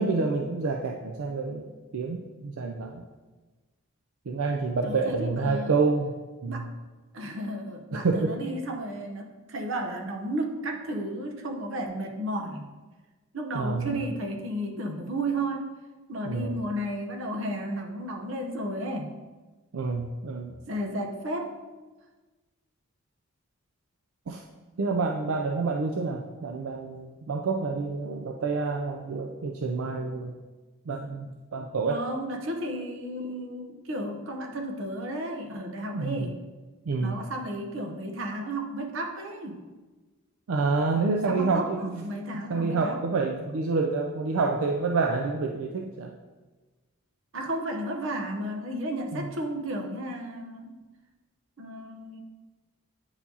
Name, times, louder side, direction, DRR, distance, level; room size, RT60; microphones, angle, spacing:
voice 1, 0.0-3.0 4.3-6.1 6.4-6.7 7.9-8.4 13.5-14.0 16.2-16.5 19.7-20.6 24.3-24.4 24.8-30.3 30.9-32.0 35.9-36.3 36.9-37.2 40.5-46.1 49.1-49.3, right 4 dB, 85° right, 2 dB, 0.4 m, -28 dB
voice 2, 4.8-5.8 6.5-6.7 7.1-12.7 13.3-15.7 16.1-19.1 20.7-21.6 31.8-36.4 37.0-39.6 41.3-43.0 47.3-50.8 51.6-52.2, right 1 dB, 70° right, 3 dB, 0.8 m, -33 dB
8.7 x 4.5 x 2.8 m, 1.3 s
head